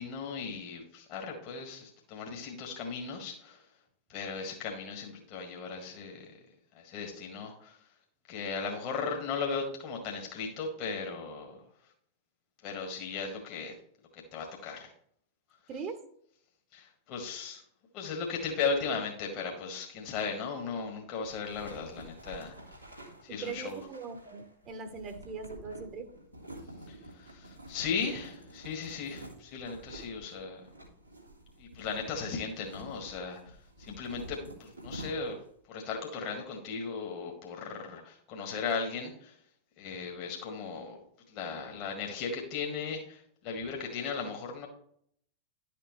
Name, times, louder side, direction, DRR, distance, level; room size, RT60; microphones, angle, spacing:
voice 1, 0.0-3.6 4.1-6.3 6.7-7.8 8.3-11.6 12.6-13.7 14.1-14.9 16.7-17.6 17.9-22.6 23.2-23.8 26.9-30.6 31.6-35.4 35.7-39.4 39.8-41.0 41.3-44.7, left 5 dB, 40° left, 2 dB, 1.7 m, -37 dB
sound 1, 21.2-35.6, right 1 dB, 90° right, 1.7 m, -49 dB
voice 2, 23.3-26.1, right 5 dB, 35° right, 8 dB, 1.1 m, -40 dB
11.0 x 6.9 x 3.2 m, 0.65 s
figure-of-eight pair, 90°, 0 cm